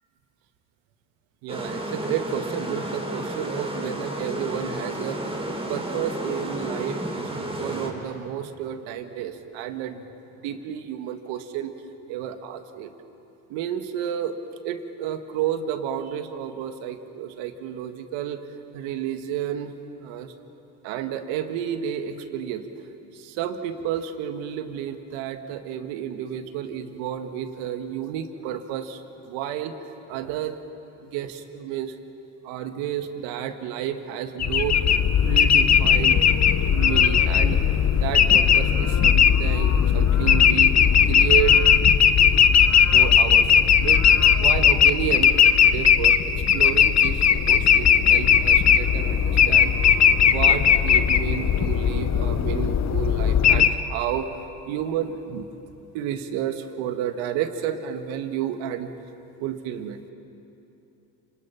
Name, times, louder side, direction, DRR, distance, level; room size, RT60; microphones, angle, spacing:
voice 1, 1.4-5.2 5.7-10.0 10.3-11.7 12.1-12.9 13.5-14.4 14.6-18.4 18.7-20.3 20.8-22.7 23.1-29.7 30.1-30.6 31.0-32.0 32.4-34.8 35.2-36.2 36.7-37.6 37.9-40.7 41.1-41.6 42.9-44.0 44.4-45.3 45.6-49.7 50.2-54.4 54.7-55.5 55.9-58.9 59.4-60.0, right 10 dB, 75° right, 8 dB, 1.8 m, -31 dB
sound 1, 1.5-7.9, right 1 dB, 10° right, 4.4 m, -31 dB
sound 2, 34.4-53.7, left 8 dB, 35° left, 1.1 m, -18 dB
27.0 x 25.5 x 5.9 m, 2.9 s
supercardioid pair, 75°, 48 cm